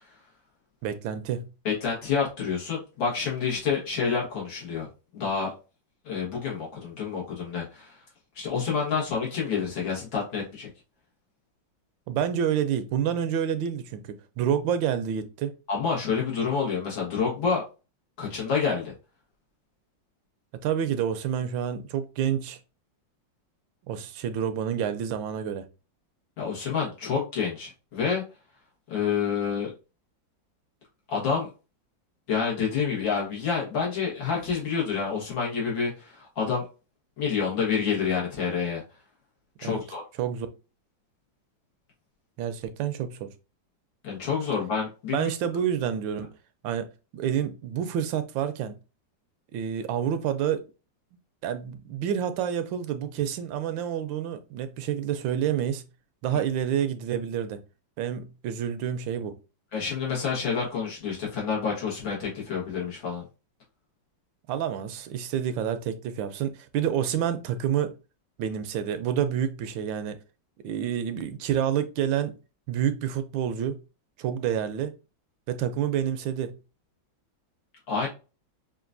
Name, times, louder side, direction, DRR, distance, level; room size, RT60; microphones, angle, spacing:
voice 1, 0.8-1.5 12.1-15.5 20.6-22.6 23.9-25.6 39.6-39.8 40.2-40.5 42.4-43.3 45.1-46.3 46.6-46.9 47.1-48.7 49.5-50.6 51.4-55.8 56.2-57.6 58.0-59.3 64.5-67.9 68.4-70.2 70.6-72.3 72.7-73.8 74.2-74.9 75.5-76.5, right 9 dB, 80° right, 1.3 m, -28 dB
voice 2, 1.7-4.9 5.1-5.5 6.1-8.0 8.4-10.7 15.7-17.6 18.2-18.9 26.4-28.2 28.9-29.7 31.1-31.5 32.3-36.6 37.2-38.8 39.6-40.0 44.0-45.3 59.7-63.2 77.9-78.1, left 6 dB, 80° left, 2.2 m, -28 dB
5.9 x 2.5 x 2.5 m
omnidirectional pair, 2.1 m